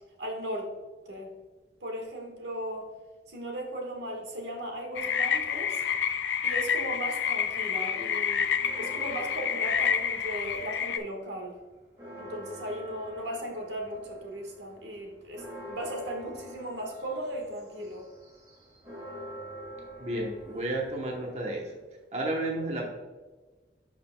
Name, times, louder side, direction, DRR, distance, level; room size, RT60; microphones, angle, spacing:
voice 1, 0.2-0.7 1.0-1.3 1.8-2.9 3.3-5.8 6.4-11.6 12.2-18.1, right 1 dB, 85° right, 1 dB, 1.5 m, -37 dB
sound 1, 5.0-11.0, left 7 dB, 85° left, 0.4 m, -29 dB
sound 2, 8.5-10.9 11.3-21.8, equal, 20° right, 2.2 m, -46 dB
voice 2, 20.0-21.7 22.1-22.9, right 1 dB, 40° right, -1 dB, 1.0 m, -32 dB
11.0 x 5.1 x 2.2 m, 1.3 s
head